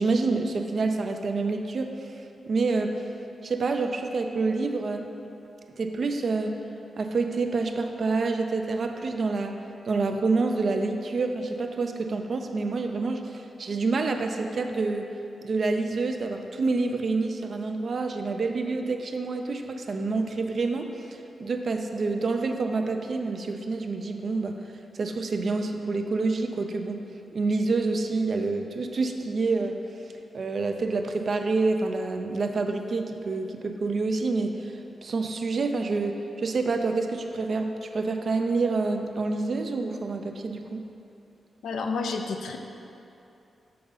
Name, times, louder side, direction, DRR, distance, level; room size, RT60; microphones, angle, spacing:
voice 1, 0.0-1.9 2.5-3.0 3.4-5.1 5.8-6.6 7.0-9.6 9.8-15.1 15.4-24.6 24.9-27.0 27.3-29.8 30.3-34.7 35.0-40.8, right 3 dB, 60° right, 5 dB, 0.5 m, -27 dB
voice 2, 41.6-42.6, left 4 dB, 85° left, 4 dB, 0.5 m, -30 dB
6.7 x 3.8 x 5.4 m, 2.8 s
cardioid pair, 65°, 0 cm